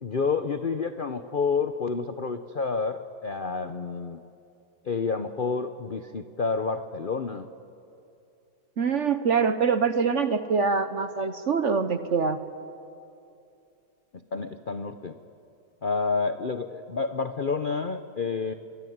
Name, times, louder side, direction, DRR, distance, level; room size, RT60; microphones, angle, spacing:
voice 1, 0.0-4.2 4.8-7.5 14.3-15.2 15.8-18.5, left 4 dB, 80° left, 9 dB, 0.4 m, -29 dB
voice 2, 8.8-12.4, right 5 dB, 50° right, 11 dB, 0.9 m, -24 dB
25.5 x 23.0 x 9.4 m, 2.6 s
omnidirectional pair, 2.2 m